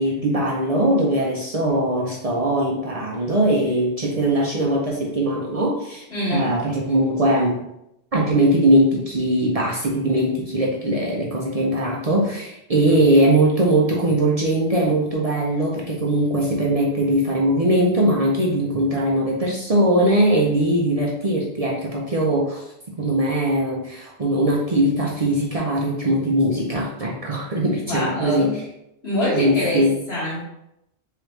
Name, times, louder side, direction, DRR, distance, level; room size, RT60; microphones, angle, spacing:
voice 1, 0.0-6.0 6.3-7.6 8.1-22.6 23.0-28.5 29.3-29.9, right 1 dB, 45° right, -2 dB, 0.6 m, -20 dB
voice 2, 6.1-6.5 27.9-28.6 29.0-30.4, left 1 dB, 75° left, -8 dB, 2.0 m, -24 dB
3.8 x 3.2 x 3.1 m, 0.81 s
omnidirectional pair, 1.1 m